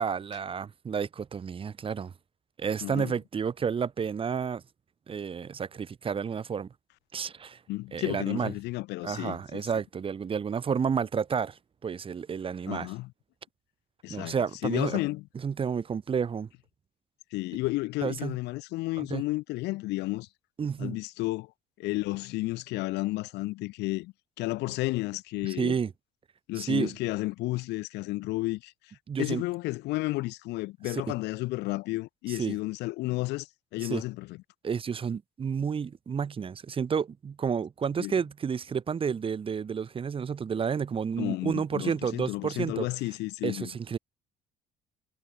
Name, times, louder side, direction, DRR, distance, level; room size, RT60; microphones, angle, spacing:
voice 1, 0.0-2.1 2.6-4.6 5.1-6.7 7.1-7.6 7.9-8.5 9.0-12.9 14.1-15.0 15.3-16.5 18.0-18.4 19.0-19.2 20.6-21.0 25.4-25.9 26.6-26.9 29.1-29.4 30.8-31.0 32.3-32.6 33.8-34.0 34.6-42.9 43.4-44.0, right 6 dB, 30° right, 1.0 m, -31 dB
voice 2, 2.8-3.1 7.7-9.6 12.7-13.1 14.0-14.3 14.6-15.2 17.3-20.3 20.8-21.5 21.8-25.7 26.5-28.7 29.2-33.5 33.7-34.3 38.0-38.2 41.2-43.7, left 20 dB, 85° left, 1.1 m, -32 dB
cardioid pair, 110°, 17 cm